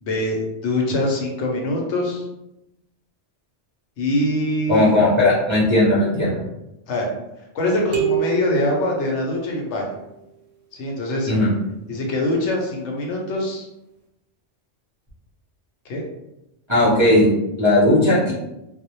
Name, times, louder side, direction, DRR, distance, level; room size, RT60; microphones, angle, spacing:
voice 1, 0.0-2.2 4.0-4.9 6.9-7.1 7.5-10.0 10.7-11.3 11.9-13.7 15.9-16.0, left 1 dB, 70° left, -1 dB, 0.9 m, -23 dB
voice 2, 4.7-6.4 11.3-11.5 16.7-18.3, left 1 dB, 35° right, -8 dB, 0.5 m, -17 dB
sound 1, 7.9-9.8, right 8 dB, 70° right, 0.8 m, -27 dB
2.2 x 2.0 x 2.8 m, 0.91 s
omnidirectional pair, 1.3 m